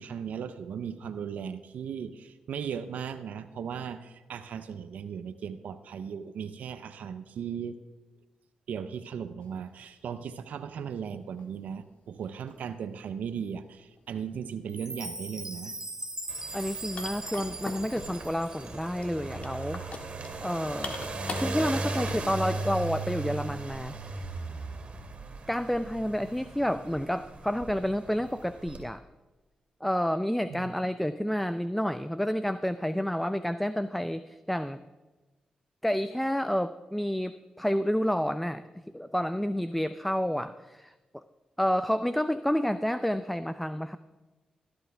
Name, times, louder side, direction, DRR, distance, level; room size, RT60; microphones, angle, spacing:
voice 1, 0.0-7.7 8.7-15.7 30.5-30.7, right 7 dB, 80° right, 9 dB, 0.6 m, -37 dB
sound 1, 9.8-9.9 11.4-11.5 12.2-12.8 14.0-14.2 16.0-16.1 16.4-16.5 17.0-18.3 19.0-22.2, left 3 dB, 55° left, 1.5 m, -42 dB
Chime, 14.7-18.9, right 2 dB, 20° right, 1.4 m, -40 dB
sound 2, 16.3-28.8, right 3 dB, 50° right, 2.3 m, -37 dB
voice 2, 16.5-19.8 20.4-21.0 21.4-24.2 25.5-29.0 29.8-34.8 35.8-38.6 38.9-41.2 41.6-44.0, equal, 5° left, 12 dB, 0.5 m, -29 dB
13.0 x 11.5 x 3.4 m, 1.2 s
cardioid pair, 55°, 3 cm